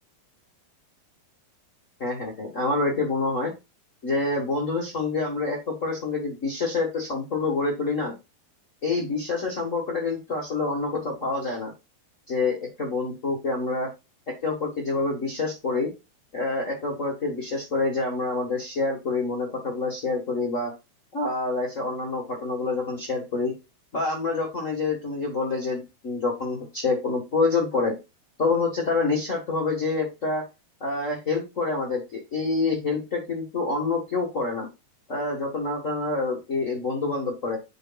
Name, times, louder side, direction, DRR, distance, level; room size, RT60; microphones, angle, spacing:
voice 1, 2.0-3.5 4.0-8.1 8.8-11.7 12.3-13.9 14.4-15.9 16.3-20.7 21.1-23.5 23.9-27.9 28.4-30.4 30.8-34.7 35.1-37.6, left 3 dB, 80° left, -2 dB, 0.6 m, -27 dB
9.7 x 5.2 x 2.3 m, 0.25 s
omnidirectional pair, 4.1 m